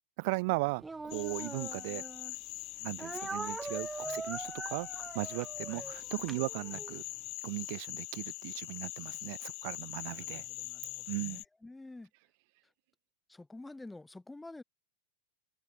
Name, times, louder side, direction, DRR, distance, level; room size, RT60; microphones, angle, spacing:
voice 1, 0.2-2.0 2.8-7.0 7.4-10.5 11.1-11.4, right 27 dB, 45° right, 0.4 m, -37 dB
Speech, 0.8-2.4 3.0-7.0, right 3 dB, 10° right, 2.0 m, -42 dB
sound 1, 1.1-11.4, left 26 dB, 40° left, 0.3 m, -42 dB
voice 2, 10.1-12.1 13.3-14.6, left 2 dB, 5° left, 3.5 m, -50 dB
figure-of-eight pair, 90°, 0 cm